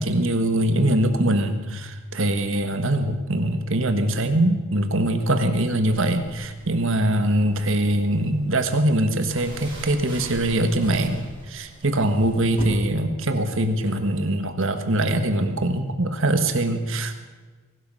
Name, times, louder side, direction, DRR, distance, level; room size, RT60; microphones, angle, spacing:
voice 1, 0.0-17.1, right 1 dB, 60° right, 7 dB, 1.5 m, -22 dB
sound 1, 5.8-12.6, right 1 dB, 25° right, 4.9 m, -43 dB
21.5 x 12.5 x 5.6 m, 1.3 s
head